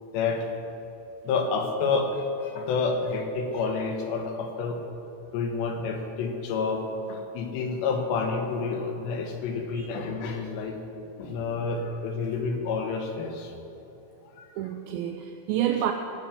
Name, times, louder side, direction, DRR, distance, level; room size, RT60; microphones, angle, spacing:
voice 1, 0.1-0.5 1.2-4.8 5.3-10.8 11.2-13.5 14.2-14.5, left 4 dB, 85° left, 3 dB, 3.4 m, -29 dB
voice 2, 14.6-15.9, right 11 dB, 85° right, 5 dB, 2.1 m, -29 dB
18.0 x 6.2 x 7.0 m, 2.9 s
omnidirectional pair, 4.9 m